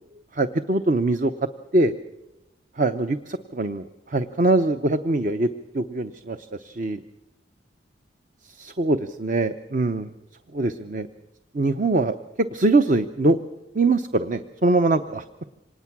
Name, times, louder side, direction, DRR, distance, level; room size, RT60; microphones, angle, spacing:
voice 1, 0.3-1.3 1.7-1.9 2.8-5.5 5.7-7.0 8.5-10.1 10.5-11.1 11.5-12.1 12.5-13.4 13.7-15.2, right 2 dB, 45° right, 9 dB, 0.7 m, -22 dB
25.5 x 19.5 x 6.0 m, 0.96 s
head